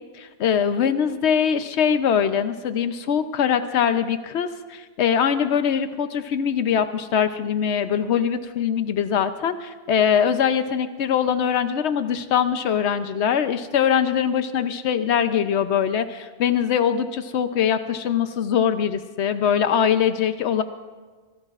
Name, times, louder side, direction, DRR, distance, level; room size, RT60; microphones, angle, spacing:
voice 1, 0.4-20.6, left 8 dB, 90° left, 10 dB, 1.0 m, -22 dB
25.0 x 17.0 x 2.4 m, 1.4 s
omnidirectional pair, 1.1 m